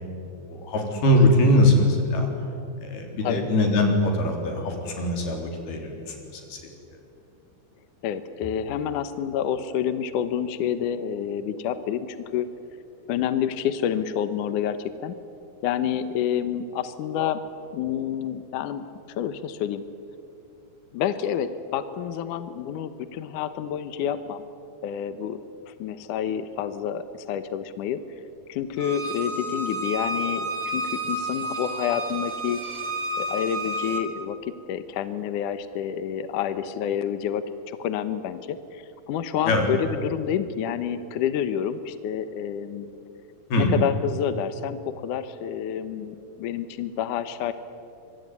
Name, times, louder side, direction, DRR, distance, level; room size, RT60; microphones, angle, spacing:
voice 1, 0.5-2.3 2.8-6.6 39.5-39.7 43.5-43.7, left 1 dB, 85° left, 3 dB, 5.8 m, -22 dB
voice 2, 8.0-12.5 13.1-15.1 15.6-17.4 17.7-19.8 20.9-24.4 24.8-25.4 25.7-28.0 28.5-32.6 33.2-42.9 43.6-47.5, left 9 dB, 70° left, 11 dB, 2.3 m, -28 dB
Bowed string instrument, 28.8-34.0, right 1 dB, 25° right, 2.7 m, -30 dB
25.5 x 24.0 x 9.6 m, 2.6 s
omnidirectional pair, 4.3 m